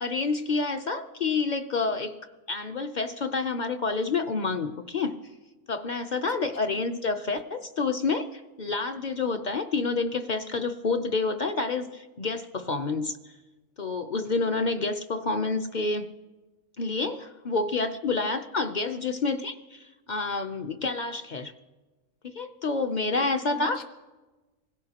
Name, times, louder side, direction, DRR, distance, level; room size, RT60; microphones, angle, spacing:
voice 1, 0.0-2.1 2.5-5.1 5.7-13.1 13.8-16.1 16.8-21.5 22.2-23.8, left 3 dB, 45° left, 7 dB, 0.6 m, -28 dB
voice 2, 6.4-6.8 7.1-7.2 22.8-23.8, left 2 dB, 65° left, 5 dB, 1.7 m, -44 dB
25.5 x 16.5 x 2.9 m, 1.2 s
omnidirectional pair, 1.4 m